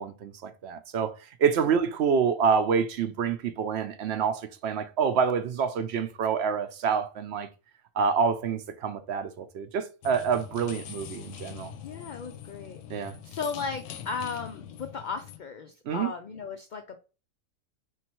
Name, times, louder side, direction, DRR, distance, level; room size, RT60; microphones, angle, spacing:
voice 1, 0.0-7.5 8.0-11.7 12.9-13.2 15.9-16.1, right 6 dB, 60° right, 0.8 m, -27 dB
sound 1, 10.0-15.4, left 10 dB, 70° left, 0.9 m, -43 dB
voice 2, 11.8-12.8 13.2-17.0, left 5 dB, 85° left, 0.4 m, -36 dB
4.4 x 3.2 x 3.0 m
omnidirectional pair, 1.4 m